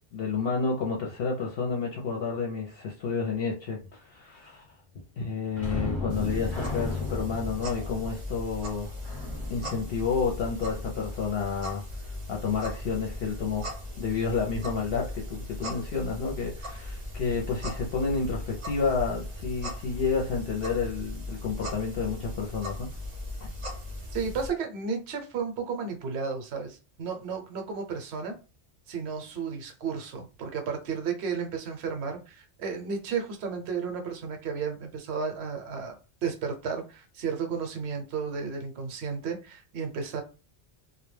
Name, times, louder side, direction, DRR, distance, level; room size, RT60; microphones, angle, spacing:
voice 1, 0.1-4.7 5.2-8.9 9.5-13.7 14.0-22.9, left 5 dB, 65° left, 0.7 m, -30 dB
sound 1, 5.5-10.9 18.3-18.4 18.8-19.0, left 3 dB, 30° left, 0.8 m, -36 dB
sound 2, 6.1-24.5, left 1 dB, 35° right, 0.6 m, -38 dB
voice 2, 24.1-28.4 28.9-40.2, right 5 dB, 70° right, 0.9 m, -33 dB
2.2 x 2.1 x 3.1 m
omnidirectional pair, 1.2 m